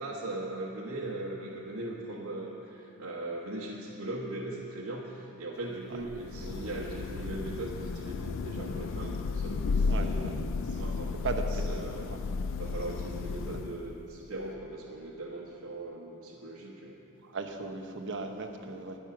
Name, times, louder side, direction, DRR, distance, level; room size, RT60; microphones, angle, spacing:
voice 1, 0.0-10.4 10.7-11.1 11.5-12.2 12.6-17.0, right 2 dB, 85° right, -4 dB, 1.4 m, -39 dB
Thunder / Rain, 6.0-14.0, left 4 dB, 60° left, 0.4 m, -33 dB
voice 2, 9.9-10.3 11.2-11.7 13.5-13.6 17.3-19.0, right 3 dB, 55° right, 4 dB, 1.0 m, -36 dB
13.0 x 10.0 x 6.1 m, 2.9 s
head